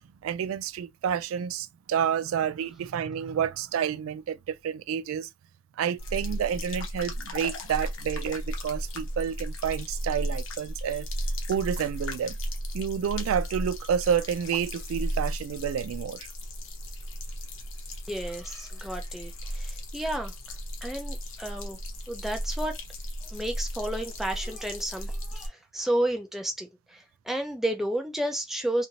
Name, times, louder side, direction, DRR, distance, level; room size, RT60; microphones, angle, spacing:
voice 1, 0.2-5.3 5.8-11.1 11.5-12.4 12.7-16.3, right 8 dB, 85° right, 0.3 m, -29 dB
sound 1, 6.0-25.5, equal, 85° left, 0.9 m, -35 dB
voice 2, 18.1-20.3 20.8-21.8 22.1-22.7 23.3-28.9, right 1 dB, ahead, 0.6 m, -31 dB
2.8 x 2.7 x 2.7 m
head